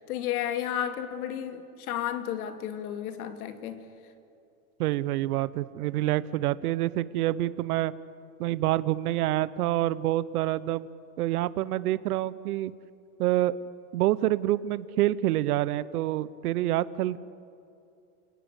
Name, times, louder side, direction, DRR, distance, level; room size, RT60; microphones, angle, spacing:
voice 1, 0.0-3.9, left 10 dB, 70° left, 2.3 m, -32 dB
voice 2, 4.8-7.9 8.4-10.9 11.2-12.7 13.2-13.6 13.9-17.2, right 14 dB, 70° right, 0.9 m, -27 dB
28.5 x 18.0 x 8.2 m
supercardioid pair, 170°, 46 cm